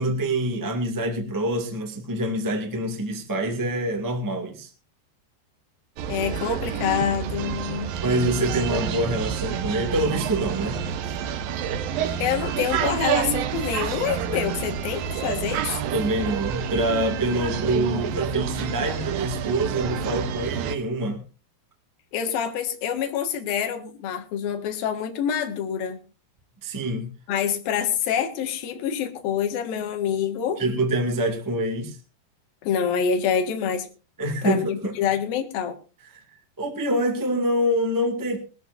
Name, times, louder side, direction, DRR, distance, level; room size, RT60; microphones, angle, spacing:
voice 1, 0.0-4.7 8.0-10.8 15.9-21.2 26.6-27.1 30.6-32.0 34.2-34.9 36.6-38.4, right 1 dB, 10° right, 4 dB, 0.9 m, -25 dB
athens restaurant, 6.0-20.8, right 8 dB, 70° right, 2.5 m, -28 dB
voice 2, 6.1-7.9 12.2-15.7 22.1-26.0 27.3-30.6 32.6-33.9 34.4-35.8, left 8 dB, 65° left, 5 dB, 3.3 m, -26 dB
21.0 x 14.0 x 2.6 m, 0.32 s
omnidirectional pair, 4.8 m